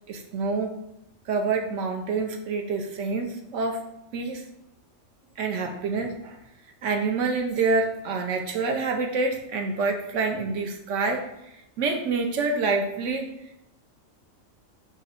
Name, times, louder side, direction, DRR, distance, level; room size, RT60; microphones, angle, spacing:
voice 1, 0.1-0.8 1.3-3.8 4.1-4.4 5.4-6.4 6.8-11.3 11.8-13.3, right 4 dB, 70° right, 4 dB, 0.9 m, -27 dB
4.6 x 3.1 x 2.9 m, 0.84 s
omnidirectional pair, 1.4 m